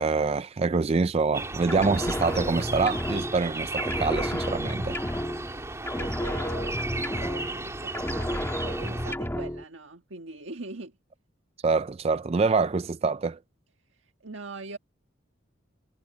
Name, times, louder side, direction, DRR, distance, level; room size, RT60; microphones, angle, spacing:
voice 1, 0.0-5.0 11.6-13.4, right 4 dB, 30° right, 0.4 m, -25 dB
sound 1, 1.3-9.2, right 2 dB, 15° right, 3.6 m, -35 dB
sound 2, 1.7-3.5 3.8-5.6 5.9-7.7 7.9-9.6, equal, 10° left, 1.8 m, -31 dB
voice 2, 5.9-10.9 13.9-14.8, right 3 dB, 80° right, 1.6 m, -42 dB
head